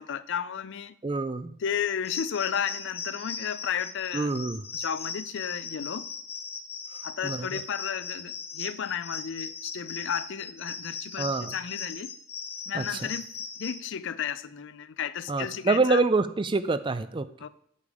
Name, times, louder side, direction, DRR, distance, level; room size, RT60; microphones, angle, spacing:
voice 1, 0.0-1.0 1.6-4.3 4.7-6.1 7.0-12.1 12.7-13.3 13.6-16.0 17.4-17.5, left 8 dB, 55° left, 0.4 m, -33 dB
voice 2, 1.0-1.5 4.1-4.6 7.2-7.6 11.2-11.5 12.7-13.1 15.3-17.3, right 3 dB, 20° right, 0.4 m, -26 dB
sound 1, 2.0-13.8, left 5 dB, 25° left, 0.9 m, -38 dB
8.5 x 7.1 x 4.8 m
head